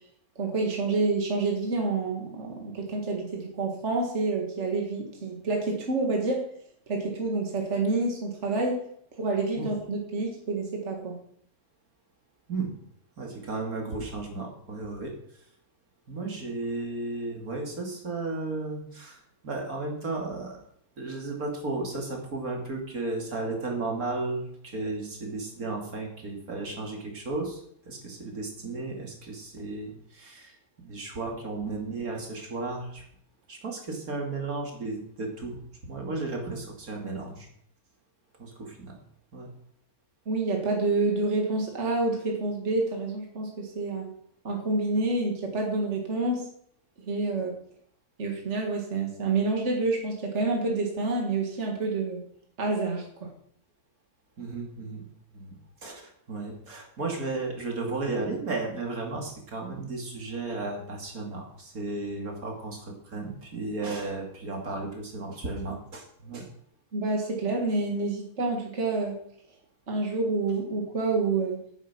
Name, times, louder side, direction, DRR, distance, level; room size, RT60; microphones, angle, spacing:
voice 1, 0.4-6.5 6.9-8.9 9.2-11.2 40.3-44.1 44.4-46.5 47.1-47.6 48.2-52.2 52.6-53.3 66.9-69.2 69.9-71.6, right 3 dB, 50° right, 1 dB, 2.2 m, -28 dB
voice 2, 13.2-15.1 16.1-20.6 21.0-27.6 27.9-33.0 33.5-35.6 35.9-37.5 38.4-38.9 39.3-39.5 54.4-55.0 55.3-66.4, right 3 dB, 70° right, 1 dB, 2.9 m, -34 dB
9.7 x 8.8 x 6.0 m, 0.65 s
omnidirectional pair, 1.6 m